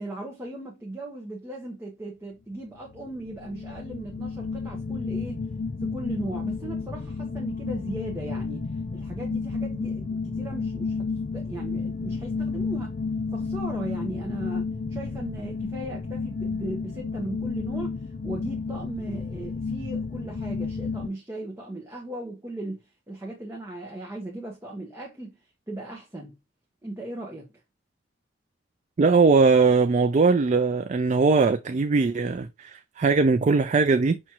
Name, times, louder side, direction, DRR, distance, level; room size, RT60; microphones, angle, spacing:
voice 1, 0.0-5.4 5.8-12.9 13.3-25.3 25.7-26.4 26.8-27.5, right 1 dB, 15° right, 1.1 m, -37 dB
sound 1, 2.9-21.1, left 4 dB, 45° left, 0.5 m, -31 dB
voice 2, 29.0-34.2, right 4 dB, 40° right, 0.4 m, -20 dB
6.0 x 3.1 x 2.9 m
head